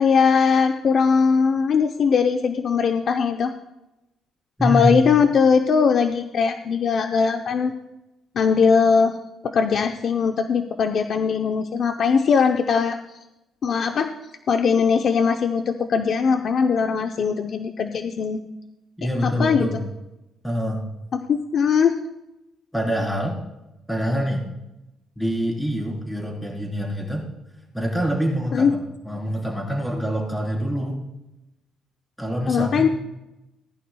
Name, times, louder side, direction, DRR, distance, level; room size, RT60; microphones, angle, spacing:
voice 1, 0.0-3.5 4.6-7.7 8.4-9.2 9.4-13.2 13.6-14.1 14.5-18.4 19.2-19.7 21.1-21.9 28.5-28.7 32.5-32.9, left 6 dB, 60° left, 6 dB, 0.7 m, -20 dB
voice 2, 4.6-5.0 19.0-19.8 20.4-20.8 22.7-23.3 23.9-24.4 25.2-27.2 27.7-31.0 32.2-32.9, equal, ahead, -2 dB, 4.0 m, -25 dB
19.5 x 11.0 x 2.3 m, 0.95 s
cardioid pair, 90°, 0 cm